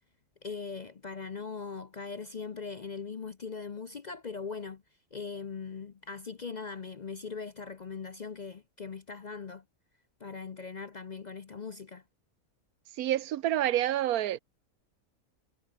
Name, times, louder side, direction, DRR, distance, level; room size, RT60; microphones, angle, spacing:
voice 1, 0.4-4.8 5.1-9.6 10.2-12.0, left 5 dB, 45° left, 0.6 m, -40 dB
voice 2, 12.9-14.4, right 12 dB, 85° right, 1.2 m, -28 dB
omnidirectional pair, 1.5 m